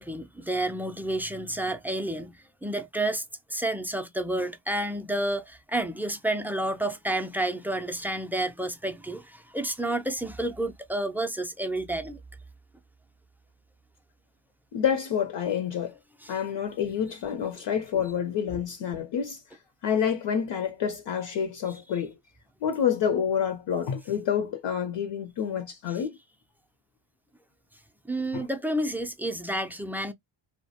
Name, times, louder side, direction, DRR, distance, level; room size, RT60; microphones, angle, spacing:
voice 1, 0.0-3.2 3.5-12.2 16.2-16.3 28.1-30.1, right 1 dB, 5° right, 0.4 m, -30 dB
voice 2, 14.7-16.0 16.3-19.4 19.8-22.2 22.6-26.2 28.3-28.4, left 8 dB, 60° left, 0.7 m, -28 dB
2.2 x 2.2 x 2.6 m
cardioid pair, 75°, 48 cm